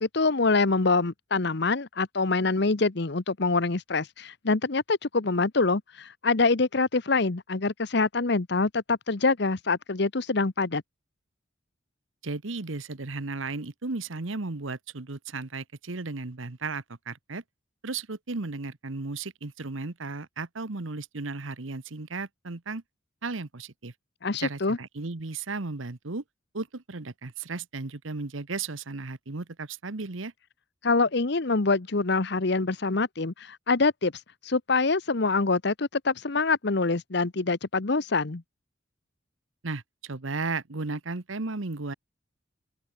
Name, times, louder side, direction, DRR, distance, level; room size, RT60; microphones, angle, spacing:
voice 1, 0.0-10.8 24.2-24.8 30.8-34.1 34.4-38.4, left 3 dB, 55° left, 1.0 m, -25 dB
voice 2, 12.2-17.4 17.8-22.8 23.2-23.9 24.4-26.2 26.5-30.3 39.6-41.9, right 3 dB, 85° right, 1.2 m, -35 dB
open air
head